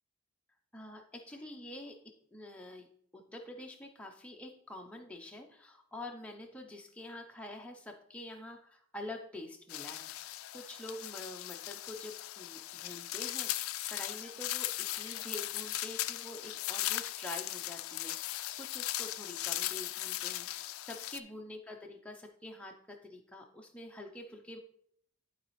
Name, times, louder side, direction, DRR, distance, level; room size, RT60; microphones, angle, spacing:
voice 1, 0.7-2.9 3.1-24.6, left 1 dB, 5° left, 1 dB, 0.6 m, -47 dB
sound 1, 9.7-21.2, left 15 dB, 75° left, 0.4 m, -38 dB
11.5 x 4.1 x 3.1 m, 0.66 s
head